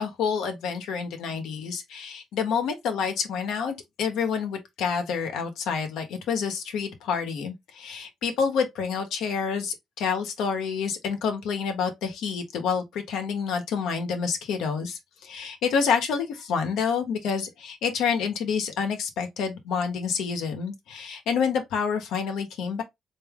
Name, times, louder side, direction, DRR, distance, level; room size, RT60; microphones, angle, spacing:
voice 1, 0.0-22.8, left 6 dB, 85° left, 1.0 m, -28 dB
3.5 x 2.7 x 3.5 m
cardioid pair, 90°, 0 cm